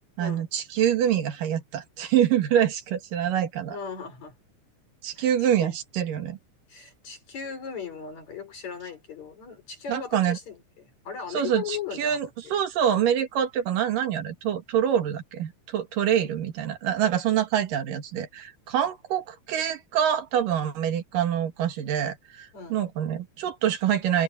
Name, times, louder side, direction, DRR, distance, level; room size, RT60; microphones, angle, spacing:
voice 1, 0.2-3.8 5.0-6.4 9.9-10.4 11.3-24.2, right 9 dB, 85° right, 3.5 m, -25 dB
voice 2, 3.7-4.3 5.2-5.3 5.6-5.7 6.7-12.5 16.2-16.4 22.5-22.9, left 7 dB, 60° left, 5.9 m, -38 dB
omnidirectional pair, 3.7 m